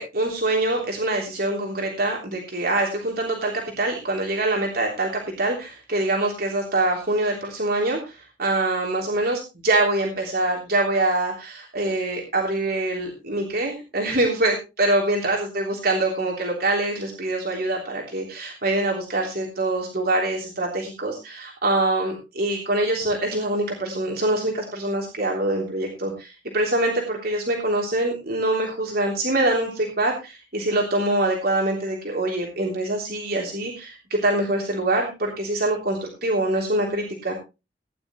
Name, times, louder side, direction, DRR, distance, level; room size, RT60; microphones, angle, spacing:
voice 1, 0.0-5.1 5.4-37.3, right 2 dB, 55° right, 0 dB, 3.3 m, -24 dB
17.5 x 10.5 x 3.1 m, 0.28 s
head